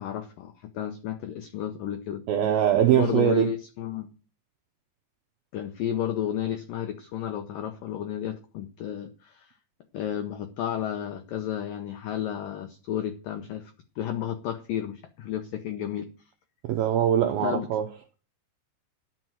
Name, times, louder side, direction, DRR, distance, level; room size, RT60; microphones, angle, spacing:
voice 1, 0.0-2.2 2.9-4.1 5.5-9.5 9.9-16.1 17.2-17.7, left 10 dB, 85° left, 1.9 m, -32 dB
voice 2, 2.3-3.5 16.6-17.9, right 10 dB, 80° right, 2.1 m, -22 dB
11.5 x 6.1 x 7.8 m
omnidirectional pair, 5.4 m